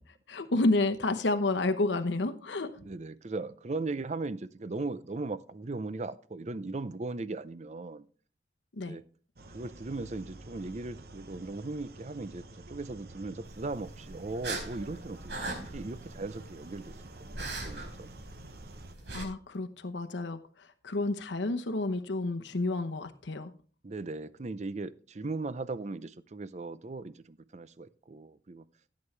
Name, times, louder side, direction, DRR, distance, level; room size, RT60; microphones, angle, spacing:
voice 1, 0.3-2.7 8.8-9.0 19.1-23.5, left 2 dB, 80° left, 7 dB, 0.9 m, -30 dB
voice 2, 2.8-8.0 8.8-9.0 9.5-18.1 23.8-28.7, right 3 dB, 40° right, 15 dB, 0.5 m, -38 dB
sound 1, 9.4-18.9, right 2 dB, 55° right, 0.9 m, -49 dB
sound 2, 13.4-19.2, right 2 dB, 75° right, 4.6 m, -41 dB
15.5 x 8.6 x 3.3 m, 0.41 s
head